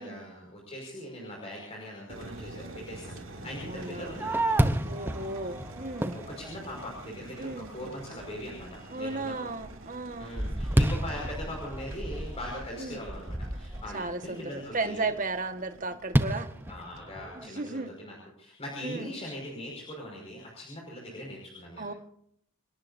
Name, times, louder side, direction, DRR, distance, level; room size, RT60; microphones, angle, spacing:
voice 1, 0.0-4.6 6.1-9.5 10.2-15.1 16.7-21.9, left 1 dB, 30° left, -2 dB, 5.5 m, -41 dB
sound 1, 2.1-17.0, right 1 dB, 70° right, 2.7 m, -47 dB
voice 2, 3.6-4.1 4.8-6.2 7.4-7.7 8.9-10.3 12.8-13.0 13.9-16.5 17.4-17.9 18.8-19.1 21.8-21.9, right 3 dB, 40° right, 8 dB, 1.5 m, -35 dB
Fireworks, 3.7-7.2 7.8-7.9 8.4-8.8 9.2-14.1 16.1-17.5, right 1 dB, 10° right, 0.8 m, -30 dB
29.0 x 18.5 x 2.7 m, 0.70 s
head